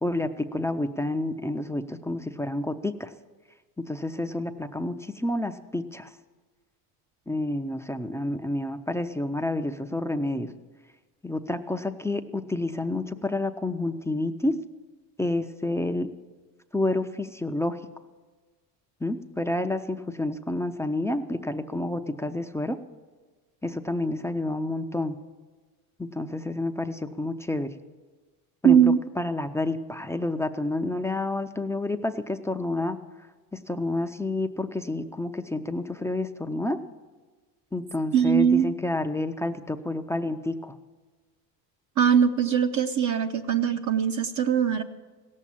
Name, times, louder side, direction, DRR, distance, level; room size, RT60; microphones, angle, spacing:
voice 1, 0.0-3.1 3.8-6.1 7.3-10.5 11.2-14.6 15.2-16.1 16.7-17.8 19.0-22.8 23.6-25.2 26.0-27.7 28.6-33.0 33.5-36.8 37.7-40.8, left 2 dB, 5° left, 6 dB, 0.5 m, -29 dB
voice 2, 28.6-29.0 38.1-38.7 42.0-44.8, right 8 dB, 45° right, 5 dB, 0.7 m, -21 dB
16.5 x 7.4 x 8.4 m, 1.4 s
supercardioid pair, 95°, 43 cm